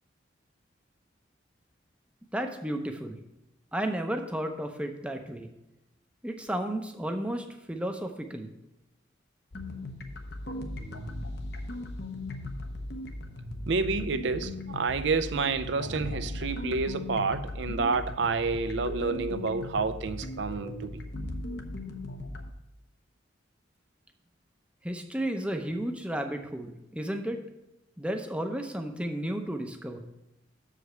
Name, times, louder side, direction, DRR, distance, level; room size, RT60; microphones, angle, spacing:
voice 1, 2.3-3.2 3.7-5.5 6.2-8.5 24.8-27.4 28.0-30.0, right 1 dB, 5° right, 0.6 m, -33 dB
sound 1, 9.5-22.5, left 1 dB, 55° left, 0.8 m, -37 dB
voice 2, 13.7-21.0, right 4 dB, 70° right, 0.5 m, -29 dB
6.9 x 4.9 x 6.6 m
head